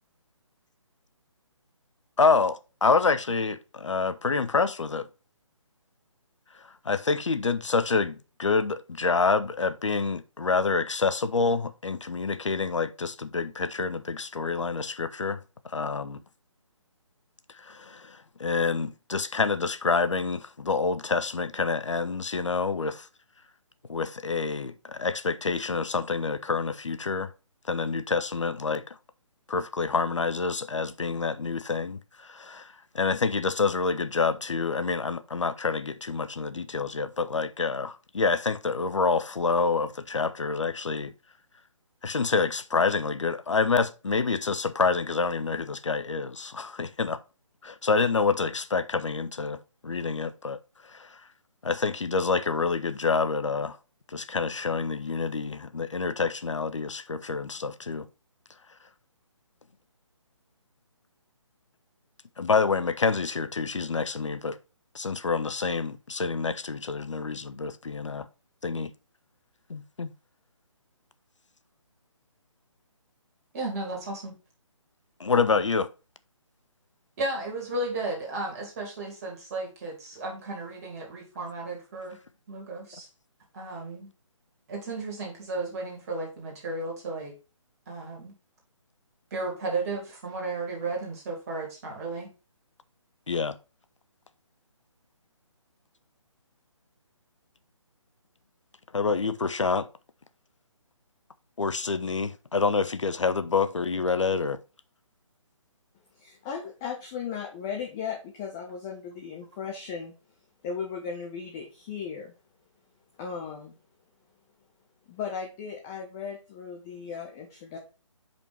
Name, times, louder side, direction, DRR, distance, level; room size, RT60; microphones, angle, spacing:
voice 1, 2.2-5.1 6.8-15.4 15.6-16.2 17.6-23.1 23.9-27.3 27.7-29.0 29.5-41.1 42.0-47.2 47.6-49.6 49.8-50.6 50.9-51.2 51.6-53.8 54.1-58.1 62.4-64.6 64.9-68.3 68.6-68.9 69.7-70.1 75.2-75.9 93.3-93.6 98.9-99.9 101.6-104.6, left 4 dB, 65° left, 0.6 m, -27 dB
voice 2, 73.5-74.3 77.2-82.2 82.5-83.1 83.5-84.1 84.7-87.3 87.9-88.3 89.3-92.3, right 2 dB, 30° right, 2.4 m, -34 dB
voice 3, 106.2-110.1 110.6-112.3 113.2-113.8 115.1-117.8, left 6 dB, 5° left, 0.3 m, -36 dB
5.2 x 4.5 x 5.0 m
figure-of-eight pair, 145°, 17 cm